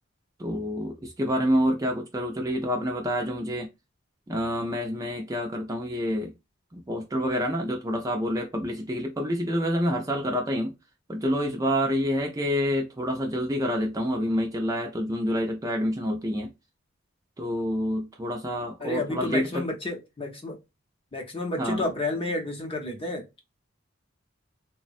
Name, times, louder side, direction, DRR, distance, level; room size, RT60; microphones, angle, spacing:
voice 1, 0.4-3.7 4.3-6.3 6.7-10.7 11.1-16.5 17.4-19.6 21.6-21.8, equal, 15° right, 0.4 m, -27 dB
voice 2, 18.8-20.6 21.1-23.4, left 2 dB, 25° left, 0.7 m, -31 dB
3.2 x 2.1 x 2.5 m
head